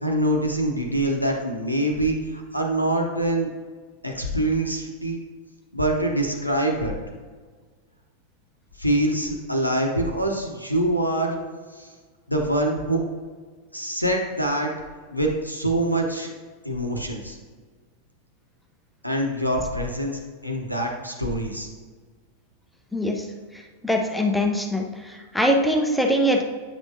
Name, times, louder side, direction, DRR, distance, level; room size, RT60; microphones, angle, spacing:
voice 1, 0.0-3.5 4.0-5.2 5.7-6.9 8.8-11.3 11.7-11.9 12.3-13.0 13.7-14.7 15.1-16.3 16.6-17.4 19.0-21.7, right 1 dB, 90° left, 1 dB, 0.8 m, -24 dB
voice 2, 22.9-23.2 23.8-24.8 25.3-26.4, equal, 5° left, 2 dB, 0.7 m, -21 dB
8.9 x 6.1 x 2.7 m, 1.5 s
figure-of-eight pair, 90°, 0 cm